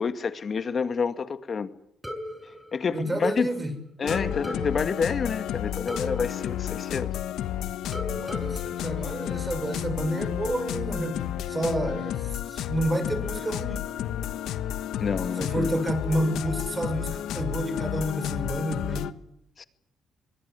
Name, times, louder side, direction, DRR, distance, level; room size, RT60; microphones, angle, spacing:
voice 1, 0.0-1.7 2.7-3.5 4.0-7.1 15.0-15.8 19.6-19.7, left 5 dB, 45° left, 2.1 m, -28 dB
sound 1, 2.0-3.6 4.1-7.5 7.9-9.9, equal, ahead, 6.4 m, -39 dB
voice 2, 2.9-3.8 8.0-13.9 15.4-19.0, right 1 dB, 20° right, 6.6 m, -30 dB
sound 2, 4.0-19.1, left 11 dB, 80° left, 1.3 m, -32 dB
24.0 x 20.5 x 9.7 m
cardioid pair, 90°, 0 cm